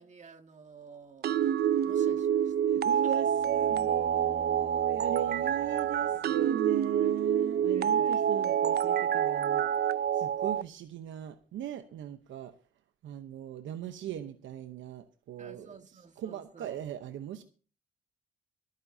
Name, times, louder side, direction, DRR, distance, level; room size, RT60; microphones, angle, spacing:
voice 1, 0.0-1.5 1.8-2.6 3.0-3.1 5.0-5.7 6.2-6.5 7.0-7.1 7.7-8.3 15.4-16.8, right 5 dB, 35° right, 2.0 m, -52 dB
sound 1, 1.2-10.6, right 9 dB, 55° right, 0.5 m, -27 dB
sound 2, 2.6-6.6 9.0-9.1, right 2 dB, 5° right, 1.6 m, -50 dB
voice 2, 2.7-9.7 10.1-12.5 13.0-17.4, right 10 dB, 75° right, 0.9 m, -39 dB
25.5 x 9.5 x 2.8 m
cardioid pair, 90°, 20 cm